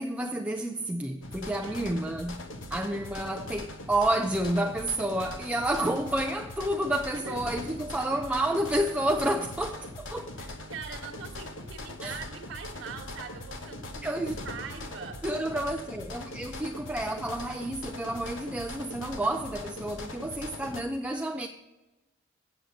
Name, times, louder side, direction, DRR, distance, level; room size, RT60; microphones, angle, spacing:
voice 1, 0.0-10.3 12.0-12.2 14.0-14.4 15.2-21.5, right 1 dB, 5° right, 0.3 m, -30 dB
sound 1, 1.2-20.8, left 1 dB, 75° left, 1.0 m, -41 dB
voice 2, 10.4-14.1 14.4-15.2, right 6 dB, 60° right, 1.3 m, -42 dB
8.0 x 7.7 x 5.1 m
head